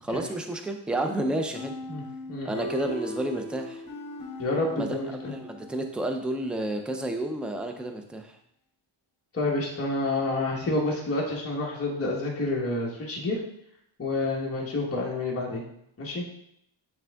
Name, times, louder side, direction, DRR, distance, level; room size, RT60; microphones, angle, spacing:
voice 1, 0.0-1.7 2.4-3.8 4.7-8.4, right 1 dB, ahead, 5 dB, 0.4 m, -31 dB
sound 1, 1.5-6.2, left 1 dB, 45° left, 1.8 m, -39 dB
voice 2, 4.4-5.3 9.3-13.4 14.0-15.6 16.0-16.2, left 2 dB, 30° left, -3 dB, 1.1 m, -28 dB
8.5 x 3.5 x 3.4 m, 0.72 s
wide cardioid pair, 165°, 49 cm